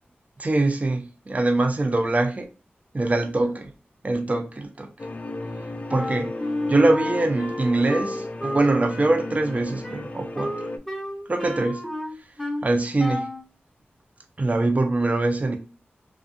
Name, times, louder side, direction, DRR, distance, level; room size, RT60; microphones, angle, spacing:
voice 1, 0.4-2.5 2.9-3.7 4.0-4.9 5.9-6.4 6.7-10.5 11.3-11.9 12.6-13.3 14.4-15.6, right 2 dB, 35° right, 0.5 m, -23 dB
sound 1, 5.0-10.8, left 2 dB, 40° left, 0.4 m, -34 dB
Wind instrument woodwind instrument, 5.9-12.7 13.0-13.4, left 1 dB, 5° left, 0.9 m, -32 dB
2.6 x 2.3 x 2.4 m
cardioid pair, 45°, 4 cm